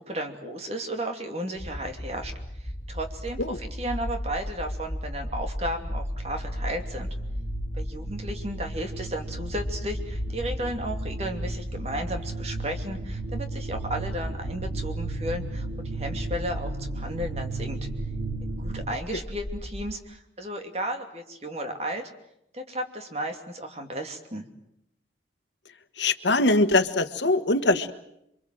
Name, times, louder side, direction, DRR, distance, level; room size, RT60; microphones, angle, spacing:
voice 1, 0.0-2.3 2.6-3.4 3.8-7.1 7.7-17.8 18.4-22.1 22.5-24.5, right 1 dB, 35° right, 5 dB, 2.8 m, -34 dB
sound 1, 1.5-19.9, equal, 35° left, 2.2 m, -35 dB
sound 2, 5.5-18.9, right 3 dB, 75° right, 1.3 m, -37 dB
voice 2, 26.0-27.9, left 2 dB, 75° left, 11 dB, 1.4 m, -22 dB
27.5 x 24.0 x 7.7 m, 0.79 s
head